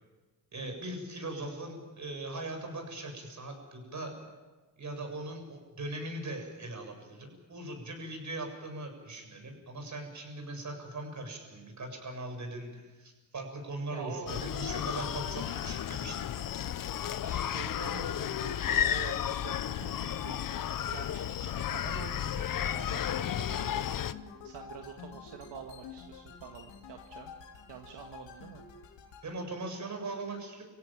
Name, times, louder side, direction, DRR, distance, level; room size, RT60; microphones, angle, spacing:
voice 1, 0.5-4.2 4.8-16.5 29.2-30.6, right 2 dB, 40° right, 3 dB, 7.6 m, -40 dB
voice 2, 13.9-14.4 17.2-23.9 24.4-27.3 27.7-28.6, right 8 dB, 70° right, 3 dB, 2.0 m, -46 dB
Screaming, 14.3-24.1, left 10 dB, 50° left, 0.9 m, -33 dB
sound 1, 22.4-29.3, left 7 dB, 80° left, 3.2 m, -48 dB
26.5 x 16.5 x 8.9 m, 1.3 s
cardioid pair, 95°, 43 cm